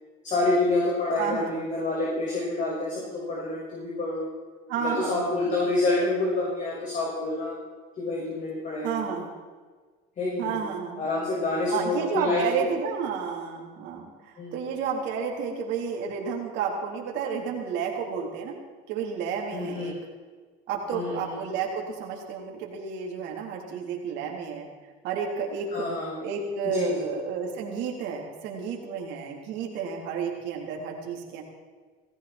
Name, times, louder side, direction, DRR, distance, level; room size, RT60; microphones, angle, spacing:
voice 1, 0.2-4.3 4.8-7.5 8.0-9.0 10.2-10.6 11.0-12.4 14.4-14.5 19.5-20.0 20.9-21.4 25.7-26.2 26.6-27.0, left 2 dB, 40° left, -5 dB, 6.2 m, -28 dB
voice 2, 1.2-1.7 4.7-5.4 8.8-9.3 10.4-11.1 11.7-18.5 18.9-19.9 20.7-24.7 25.0-25.9 26.2-31.4, right 6 dB, 70° right, -1 dB, 4.0 m, -31 dB
18.5 x 16.0 x 4.5 m, 1.5 s
supercardioid pair, 110°, 19 cm